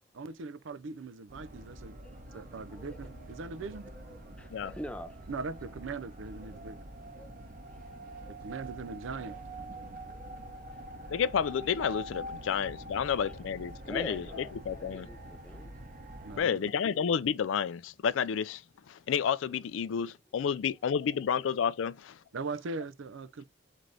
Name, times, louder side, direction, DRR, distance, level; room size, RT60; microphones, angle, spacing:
voice 1, 0.2-1.9 2.3-3.9 5.3-6.9 8.3-9.4 16.2-16.6 22.3-23.4, right 4 dB, 70° right, 0.4 m, -40 dB
sound 1, 1.3-16.4, right 1 dB, 40° right, 0.8 m, -45 dB
voice 2, 2.0-3.0 3.7-5.2 7.1-7.3 8.2-8.6 9.8-10.4 10.7-10.8 13.9-15.7, equal, 5° left, 0.4 m, -46 dB
voice 3, 11.1-14.2 14.7-15.1 16.4-18.6 18.9-22.2, left 7 dB, 75° left, 0.3 m, -30 dB
4.0 x 3.3 x 3.6 m
head